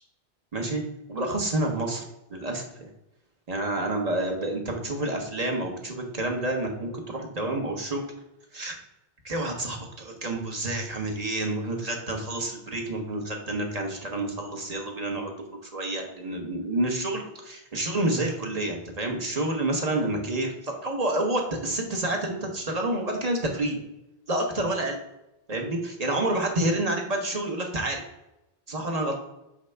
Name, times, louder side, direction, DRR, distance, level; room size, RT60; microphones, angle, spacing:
voice 1, 0.5-0.8 1.1-2.0 2.3-2.9 3.5-8.0 8.5-8.8 9.2-23.8 24.3-25.0 25.5-28.0 28.7-29.1, right 1 dB, 40° right, 2 dB, 1.2 m, -29 dB
6.3 x 5.0 x 3.3 m, 0.90 s
omnidirectional pair, 1.0 m